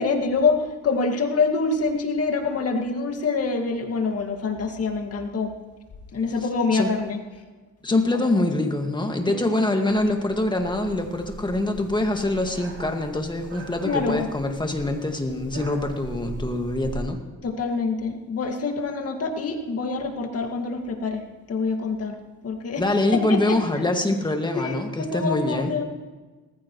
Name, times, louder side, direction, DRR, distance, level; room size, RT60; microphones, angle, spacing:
voice 1, 0.0-5.5 6.1-7.2 7.9-8.1 8.3-8.5 9.2-9.4 13.8-14.3 17.4-22.2 22.4-22.8 23.1-23.6 24.5-25.8, left 4 dB, 50° left, 3 dB, 2.1 m, -26 dB
voice 2, 7.8-17.2 22.8-25.7, left 1 dB, 15° left, 4 dB, 2.0 m, -24 dB
sound 1, 9.9-17.1, right 2 dB, 50° right, 3.4 m, -40 dB
19.5 x 15.0 x 3.2 m, 1.3 s
cardioid pair, 90°, 30 cm